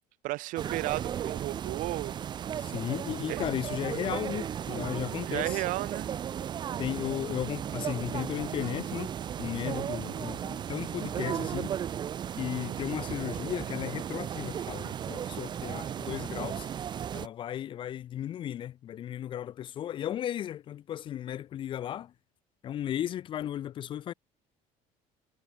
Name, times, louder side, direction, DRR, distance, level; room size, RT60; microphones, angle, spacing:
voice 1, 0.2-2.1 3.3-3.4 5.3-6.1, right 19 dB, 60° right, 1.1 m, -33 dB
sound 1, 0.6-17.3, right 9 dB, 30° right, 1.1 m, -35 dB
voice 2, 2.6-5.6 6.8-9.1 9.4-11.7 12.4-16.7 17.1-22.1 22.6-24.1, left 11 dB, 35° left, 0.6 m, -35 dB
cardioid pair, 170°, 15 cm